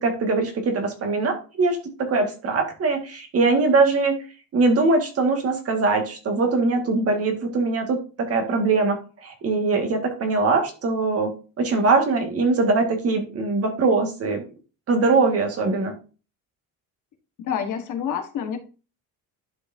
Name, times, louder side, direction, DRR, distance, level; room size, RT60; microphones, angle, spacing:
voice 1, 0.0-4.2 4.5-11.3 11.6-14.4 14.9-15.9, right 3 dB, 40° right, 4 dB, 1.9 m, -22 dB
voice 2, 17.4-18.6, left 8 dB, 60° left, 5 dB, 1.4 m, -28 dB
11.5 x 4.8 x 2.7 m, 0.34 s
cardioid pair, 145°, 35 cm